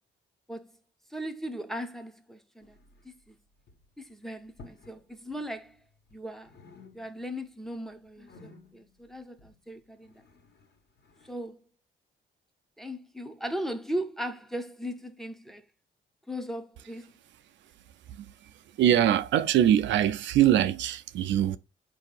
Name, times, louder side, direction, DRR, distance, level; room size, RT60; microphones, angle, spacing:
voice 1, 1.1-2.8 3.0-3.4 4.0-5.8 6.1-6.5 6.9-10.1 11.2-11.6 12.8-15.6 16.3-17.1, equal, ahead, 0.6 m, -38 dB
sound 1, 2.6-3.3 3.6-3.9 4.5-5.0 5.3-6.2 6.4-7.4 7.7-11.4, left 3 dB, 60° left, 1.4 m, -55 dB
voice 2, 18.1-21.6, right 11 dB, 70° right, 0.4 m, -23 dB
4.4 x 2.7 x 3.9 m
cardioid pair, 90°, 20 cm